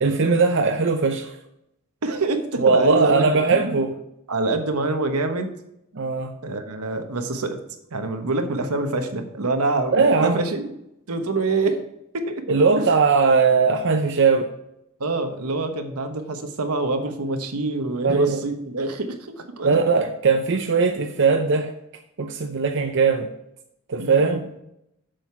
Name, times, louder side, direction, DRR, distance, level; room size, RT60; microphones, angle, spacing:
voice 1, 0.0-1.4 2.6-3.9 5.9-6.3 9.9-10.4 12.5-14.5 18.0-18.4 19.6-21.7 22.2-23.3 23.9-24.5, right 4 dB, 55° right, 5 dB, 0.6 m, -19 dB
voice 2, 2.0-3.8 4.3-5.5 6.4-7.6 7.9-10.7 11.1-11.8 12.1-12.4 12.8-12.9 15.0-19.8 24.0-24.4, right 3 dB, 80° right, 6 dB, 1.2 m, -26 dB
7.8 x 6.5 x 5.8 m, 0.81 s
head